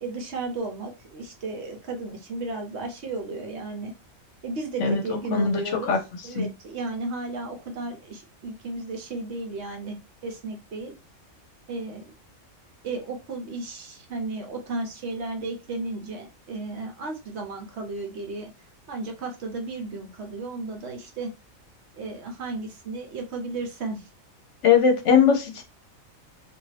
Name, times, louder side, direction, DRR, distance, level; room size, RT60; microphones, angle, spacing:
voice 1, 0.0-3.9 4.4-6.0 6.2-10.0 10.2-10.9 11.7-12.1 12.8-18.5 18.9-21.3 21.9-24.1, right 3 dB, 60° right, 3 dB, 0.9 m, -34 dB
voice 2, 24.6-25.6, left 6 dB, 65° left, 4 dB, 0.9 m, -19 dB
2.5 x 2.5 x 3.1 m, 0.27 s
omnidirectional pair, 1.4 m